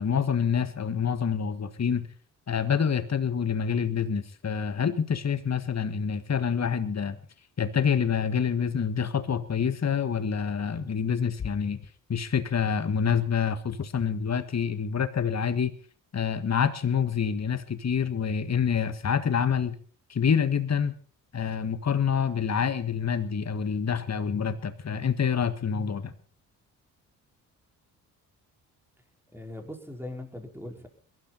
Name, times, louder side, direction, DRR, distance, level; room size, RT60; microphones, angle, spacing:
voice 1, 0.0-2.1 2.5-7.2 7.6-11.8 12.1-15.7 16.1-19.8 20.1-20.9 21.3-26.1, left 7 dB, 35° left, 11 dB, 1.7 m, -27 dB
voice 2, 29.3-30.9, left 1 dB, 5° right, 3 dB, 4.9 m, -40 dB
22.5 x 12.5 x 4.1 m, 0.40 s
hypercardioid pair, 45°, 44 cm